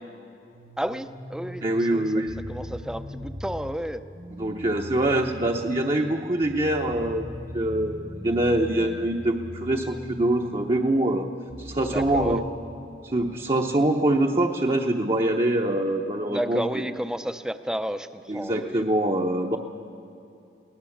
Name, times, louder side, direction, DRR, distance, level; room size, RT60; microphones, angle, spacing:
sound 1, 0.5-12.4, equal, 90° right, 4.0 m, -40 dB
voice 1, 0.8-4.0 11.9-12.4 16.3-18.8, equal, 5° right, 11 dB, 0.6 m, -32 dB
voice 2, 1.6-2.4 4.3-7.2 7.5-11.3 11.6-12.4 13.0-16.6 18.3-19.6, right 1 dB, 30° right, 1 dB, 0.8 m, -24 dB
23.0 x 18.0 x 7.2 m, 2.7 s
head